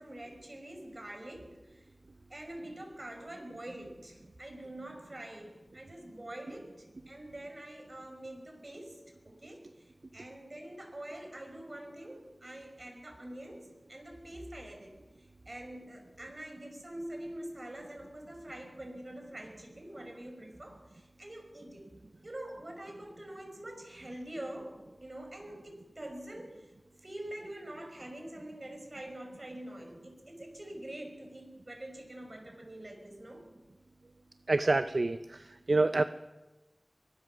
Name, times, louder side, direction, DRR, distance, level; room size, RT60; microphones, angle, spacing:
voice 1, 0.0-1.9 2.3-21.9 22.2-26.7 27.0-33.5, right 1 dB, 50° right, 4 dB, 5.7 m, -45 dB
voice 2, 34.5-35.2 35.7-36.0, right 2 dB, 70° right, 11 dB, 0.6 m, -26 dB
23.0 x 20.5 x 6.2 m, 1.1 s
wide cardioid pair, 45°, 0 cm